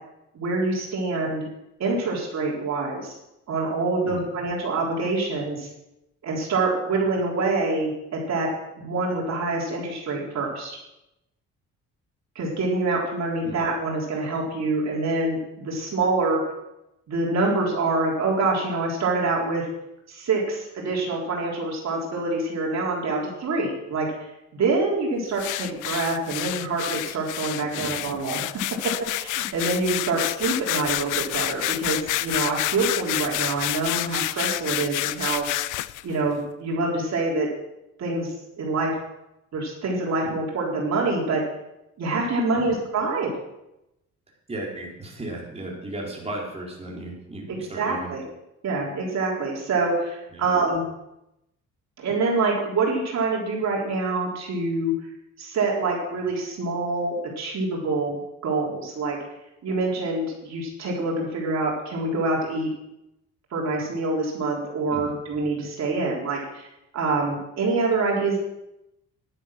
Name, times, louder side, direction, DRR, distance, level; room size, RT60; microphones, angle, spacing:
voice 1, 0.3-1.5 1.8-3.1 3.5-5.7 6.2-8.5 8.8-10.8 12.4-16.4 17.1-19.7 20.1-24.1 24.5-28.4 28.8-35.6 36.0-37.5 38.0-38.9 39.5-41.4 42.0-43.3 47.5-48.2 48.6-50.8 52.0-54.9 55.4-58.2 58.4-59.2 59.6-62.7 63.5-66.7 66.9-68.4, right 3 dB, 60° right, -3 dB, 3.9 m, -26 dB
sound 1, 25.4-36.0, left 17 dB, 90° left, 0.5 m, -29 dB
voice 2, 44.5-48.1 50.3-50.4 64.9-65.2, right 1 dB, 20° right, -3 dB, 4.3 m, -35 dB
11.5 x 10.0 x 6.1 m, 0.89 s
cardioid pair, 90°, 30 cm